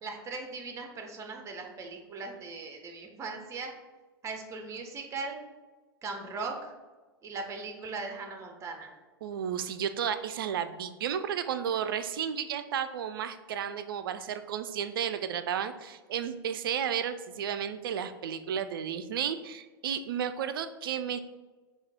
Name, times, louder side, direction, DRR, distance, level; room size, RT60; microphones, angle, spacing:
voice 1, 0.0-3.7 4.2-5.4 6.0-6.7 7.2-8.9, right 4 dB, 25° right, 3 dB, 0.7 m, -39 dB
voice 2, 9.2-21.2, right 8 dB, 65° right, 10 dB, 0.4 m, -33 dB
4.8 x 2.4 x 3.5 m, 1.2 s
figure-of-eight pair, 100°, 13 cm